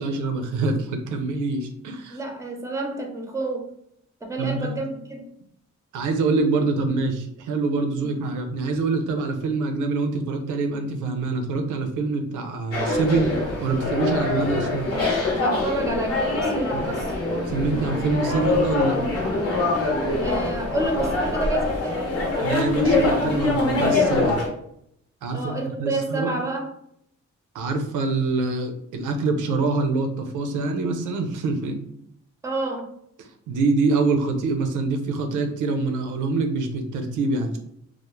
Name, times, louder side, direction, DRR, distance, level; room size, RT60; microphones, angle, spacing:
voice 1, 0.0-2.2 4.4-4.8 5.9-14.9 16.7-16.9 17.5-19.0 22.4-24.4 25.2-26.3 27.5-31.8 33.5-37.6, right 3 dB, 85° right, 5 dB, 0.5 m, -25 dB
voice 2, 2.1-3.7 4.2-5.3 8.0-8.1 15.3-17.1 20.2-22.0 25.3-26.7 32.4-32.9, right 2 dB, 10° right, 2 dB, 0.6 m, -29 dB
sound 1, 12.7-24.5, left 2 dB, 50° left, 0.9 m, -24 dB
2.2 x 2.0 x 2.9 m, 0.72 s
cardioid pair, 70°, 30 cm